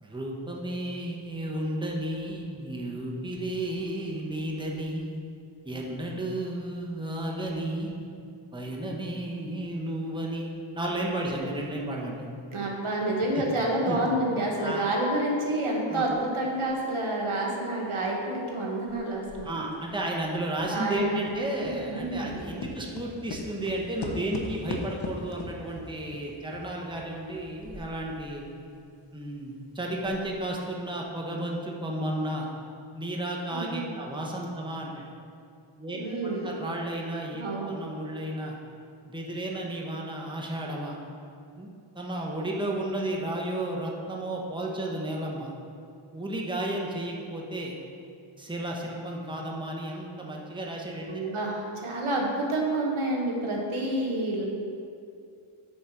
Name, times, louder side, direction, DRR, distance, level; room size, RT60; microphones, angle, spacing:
voice 1, 0.0-5.2 5.6-8.1 8.5-12.3 13.3-13.4 13.9-14.0 14.6-14.8 15.9-16.1 19.4-28.4 29.1-32.5 32.9-35.0 35.8-36.0 36.4-38.6 39.0-41.0 41.6-41.7 41.9-45.5 46.1-47.7 48.4-51.3, right 1 dB, 10° right, -2 dB, 1.0 m, -33 dB
voice 2, 12.5-19.5 20.7-22.4 33.5-33.9 35.9-36.6 37.4-37.8 51.1-54.5, right 1 dB, 80° right, -2 dB, 1.4 m, -29 dB
sound 1, 16.1-16.2 16.6-18.5 18.9-28.4 28.7-28.8 29.3-29.4 29.9-30.4, left 3 dB, 55° left, 0.9 m, -41 dB
8.5 x 4.1 x 6.0 m, 2.5 s
wide cardioid pair, 80°, 50 cm